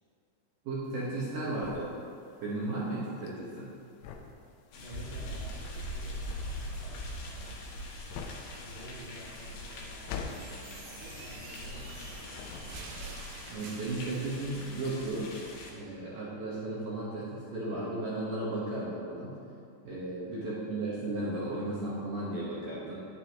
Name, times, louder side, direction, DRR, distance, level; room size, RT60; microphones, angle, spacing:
voice 1, 0.6-1.9 2.4-3.7 13.5-15.3 15.7-19.3 19.8-22.9, right 2 dB, 70° right, -7 dB, 2.1 m, -35 dB
sound 1, 0.9-12.0 12.3-13.2, left 6 dB, 85° left, 2.4 m, -45 dB
sound 2, 4.7-15.7, left 1 dB, 65° left, 2.9 m, -42 dB
voice 2, 4.7-7.9 8.6-12.6 20.3-20.7, right 1 dB, 45° right, -10 dB, 1.0 m, -51 dB
sound 3, 10.2-14.6, right 5 dB, 90° right, 2.3 m, -49 dB
11.5 x 10.0 x 3.0 m, 2.5 s
omnidirectional pair, 5.7 m